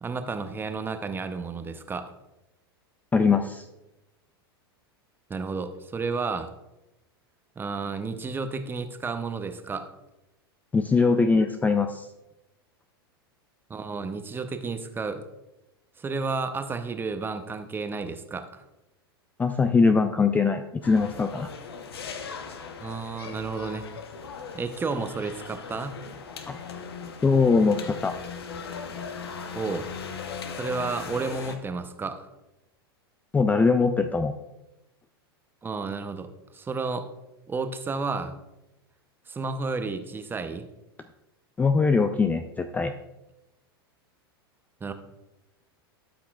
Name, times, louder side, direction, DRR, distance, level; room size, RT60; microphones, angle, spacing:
voice 1, 0.0-2.1 5.3-6.5 7.6-9.9 13.7-15.2 16.0-18.6 22.8-23.9 24.5-26.0 29.6-29.9 30.6-32.3 35.6-36.3 36.5-37.1 37.5-38.3 39.3-40.6 44.8-44.9, right 4 dB, 15° right, 9 dB, 0.7 m, -31 dB
voice 2, 3.1-3.7 10.7-12.1 19.4-21.5 26.5-26.6 27.2-28.1 33.3-34.3 41.6-42.9, left 4 dB, 10° left, 8 dB, 0.3 m, -22 dB
sound 1, 20.8-31.6, left 6 dB, 80° left, 0.9 m, -39 dB
12.5 x 5.7 x 2.3 m, 0.95 s
hypercardioid pair, 100°, 13 cm